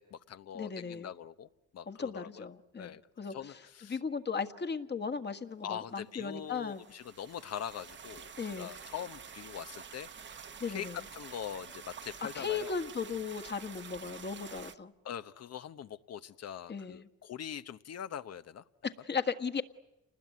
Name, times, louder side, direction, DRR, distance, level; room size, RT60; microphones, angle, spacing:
voice 1, 0.0-1.5 1.7-2.5 2.8-3.0 3.3-4.0 5.6-12.7 15.0-18.6, left 9 dB, 55° left, 13 dB, 1.0 m, -43 dB
voice 2, 0.5-1.1 1.9-3.6 3.9-6.8 8.4-8.7 10.6-11.0 12.2-14.9 16.7-17.1 18.8-19.6, left 5 dB, 35° left, 9 dB, 1.7 m, -36 dB
sound 1, 6.4-14.8, right 7 dB, 40° right, 1.1 m, -49 dB
29.0 x 20.5 x 9.5 m, 0.95 s
cardioid pair, 90°, 30 cm